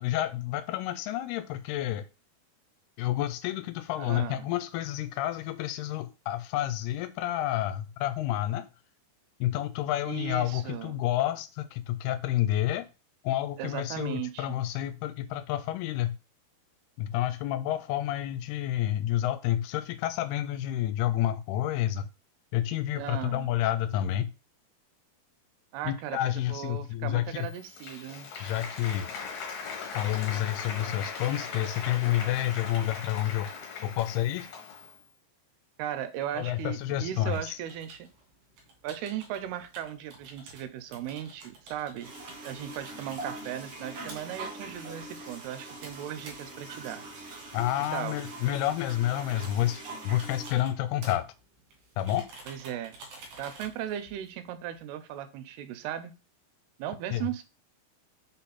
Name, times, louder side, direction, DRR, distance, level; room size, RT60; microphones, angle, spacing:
voice 1, 0.0-2.1 3.0-8.7 9.4-12.9 13.2-16.1 17.0-22.1 22.5-24.3 25.8-27.5 28.4-29.1 29.9-33.5 33.8-34.5 36.4-37.6 47.5-51.3 52.0-52.3 57.1-57.3, left 13 dB, 85° left, 2.5 m, -29 dB
voice 2, 4.0-4.5 10.0-11.0 13.6-14.6 23.0-23.5 25.7-28.3 35.8-38.1 38.8-42.1 42.4-47.0 47.8-48.2 52.5-53.0 53.4-56.1 56.8-57.4, right 11 dB, 85° right, 2.6 m, -37 dB
Applause, 27.4-35.0, left 5 dB, 60° left, 2.6 m, -39 dB
sound 1, 37.3-54.8, right 2 dB, 65° right, 2.9 m, -51 dB
sound 2, 42.0-50.5, right 2 dB, 50° right, 2.0 m, -43 dB
5.8 x 4.0 x 4.2 m
omnidirectional pair, 4.6 m